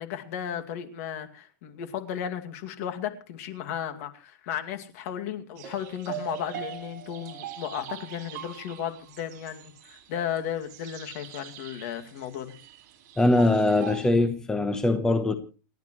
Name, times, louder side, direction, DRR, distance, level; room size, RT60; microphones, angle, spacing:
voice 1, 0.0-12.6, left 9 dB, 50° left, 2.4 m, -34 dB
sound 1, 5.6-14.1, right 11 dB, 45° right, 4.3 m, -42 dB
voice 2, 13.2-15.3, left 2 dB, 5° left, 1.0 m, -22 dB
29.0 x 10.5 x 3.2 m
supercardioid pair, 165°, 10 cm